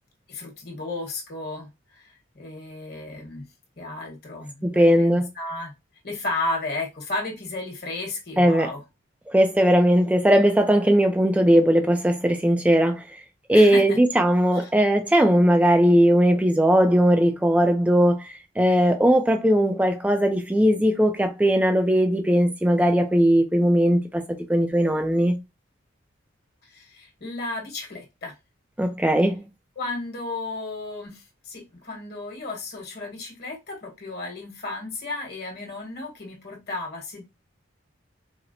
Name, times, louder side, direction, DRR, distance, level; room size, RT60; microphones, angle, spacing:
voice 1, 0.3-3.5 3.8-5.7 6.0-8.8 13.5-14.0 14.5-14.7 26.6-28.3 29.8-37.2, left 2 dB, 50° left, 1.2 m, -33 dB
voice 2, 4.6-5.3 8.4-8.7 9.3-13.0 13.5-24.2 24.5-25.3 28.8-29.5, equal, 5° right, 0.3 m, -19 dB
4.1 x 2.1 x 2.6 m
head